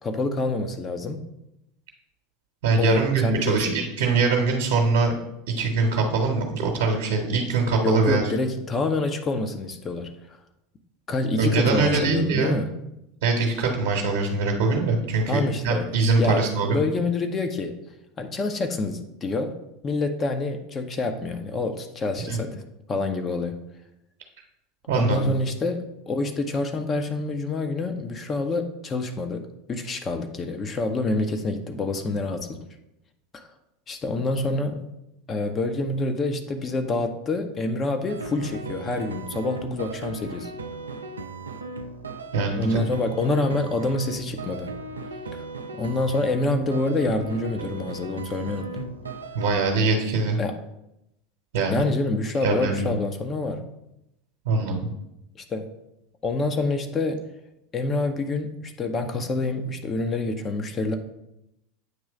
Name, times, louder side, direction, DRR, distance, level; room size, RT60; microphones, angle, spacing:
voice 1, 0.0-1.2 2.8-3.8 7.8-10.1 11.1-12.7 15.3-15.9 16.2-17.8 18.2-19.5 19.8-22.6 22.9-23.6 24.9-32.6 33.3-33.4 33.9-34.9 35.3-40.5 42.6-44.7 45.3-45.4 45.8-48.9 50.4-50.5 51.7-53.7 55.4-55.7 56.2-57.3 57.7-61.0, left 2 dB, 25° left, 6 dB, 0.7 m, -27 dB
voice 2, 2.6-5.1 5.6-8.3 11.4-12.6 13.2-16.8 22.3-22.4 24.9-25.2 42.3-42.8 49.3-50.4 51.5-51.8 52.4-53.0 54.4-54.9, right 4 dB, 60° right, 1 dB, 1.0 m, -23 dB
sound 1, 38.1-49.7, right 3 dB, 75° right, 0.4 m, -37 dB
8.1 x 3.1 x 5.0 m, 0.85 s
figure-of-eight pair, 80°, 0 cm